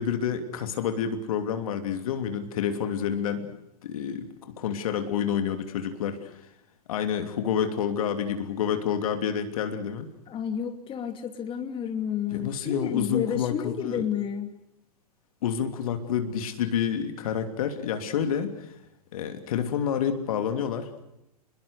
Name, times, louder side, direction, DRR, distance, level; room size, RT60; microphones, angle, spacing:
voice 1, 0.0-3.5 3.8-6.3 6.9-10.1 12.3-14.1 15.4-18.7 19.1-20.9, left 8 dB, 60° left, 7 dB, 3.0 m, -28 dB
voice 2, 10.3-14.5, left 8 dB, 25° left, 6 dB, 2.9 m, -31 dB
29.5 x 21.5 x 6.6 m, 0.83 s
figure-of-eight pair, 105°, 21 cm